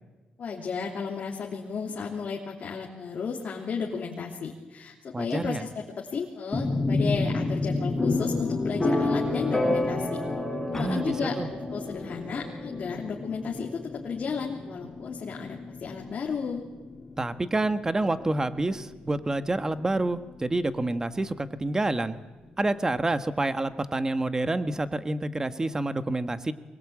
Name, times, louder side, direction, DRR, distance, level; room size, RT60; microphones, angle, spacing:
voice 1, 0.4-10.2 10.7-11.4 11.7-16.6, left 5 dB, 55° left, -2 dB, 3.1 m, -33 dB
voice 2, 5.1-5.6 10.8-11.5 17.2-22.2 22.6-26.5, right 2 dB, 20° right, 10 dB, 1.4 m, -28 dB
sound 1, 6.5-20.3, left 2 dB, 15° left, 4.7 m, -30 dB
23.5 x 21.0 x 8.7 m, 1.2 s
cardioid pair, 95°, 3 cm